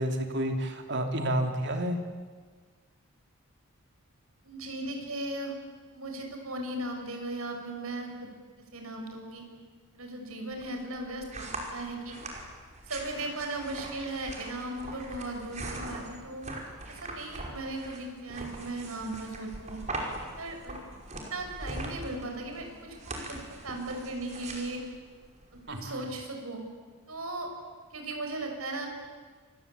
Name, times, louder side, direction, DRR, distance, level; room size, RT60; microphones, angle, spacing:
voice 1, 0.0-2.0 25.7-26.1, right 1 dB, 55° right, 4 dB, 3.3 m, -30 dB
voice 2, 4.4-5.5 5.9-8.3 8.7-9.4 9.9-12.2 12.9-16.6 16.9-19.8 20.4-20.8 21.3-23.4 23.6-24.8 25.5-26.6 27.1-27.5 27.9-28.9, right 2 dB, 85° right, 3 dB, 5.9 m, -37 dB
sound 1, 10.5-25.8, right 2 dB, 35° right, 5.3 m, -41 dB
28.5 x 23.5 x 8.6 m, 1.5 s
head